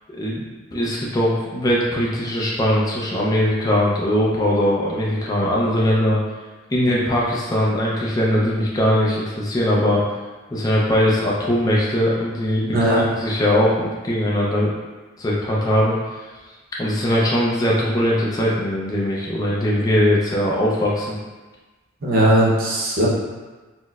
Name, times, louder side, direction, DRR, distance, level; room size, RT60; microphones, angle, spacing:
voice 1, 0.7-6.2 6.7-10.0 10.5-14.7 15.2-16.0 16.8-21.2, equal, 20° left, -5 dB, 0.4 m, -20 dB
voice 2, 12.7-13.1 22.0-23.1, right 1 dB, 45° right, -4 dB, 0.6 m, -18 dB
4.3 x 2.0 x 2.2 m, 1.3 s
head